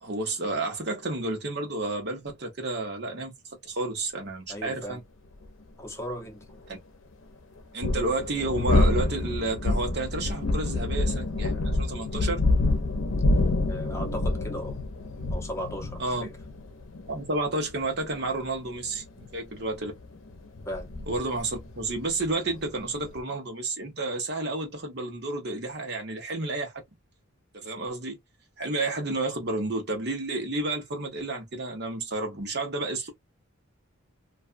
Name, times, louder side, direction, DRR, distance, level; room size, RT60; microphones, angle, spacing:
voice 1, 0.0-3.3 3.6-5.0 6.7-6.8 7.7-12.4 16.0-16.3 17.1-19.9 21.1-26.7 27.5-28.2 28.6-33.1, right 2 dB, 55° right, 1.2 m, -31 dB
voice 2, 4.5-5.0 5.8-6.6 13.7-14.8 15.3-16.3 20.7-20.9, equal, 15° left, 0.8 m, -37 dB
sound 1, 5.4-5.5 7.6-23.2, left 2 dB, 65° left, 0.7 m, -28 dB
2.6 x 2.3 x 2.5 m
head